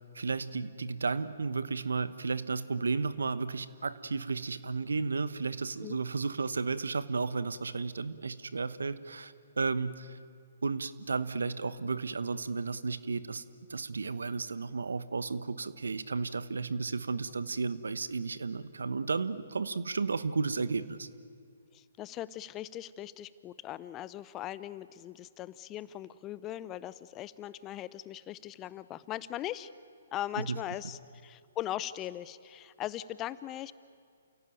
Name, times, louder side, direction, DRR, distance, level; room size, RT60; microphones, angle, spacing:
voice 1, 0.1-10.2 10.6-13.4 13.7-21.1 30.4-30.6, right 4 dB, 80° right, 15 dB, 1.1 m, -33 dB
voice 2, 21.7-29.7 30.1-33.7, left 13 dB, 25° left, 17 dB, 0.7 m, -39 dB
29.0 x 17.0 x 9.1 m, 2.2 s
hypercardioid pair, 135°, 0 cm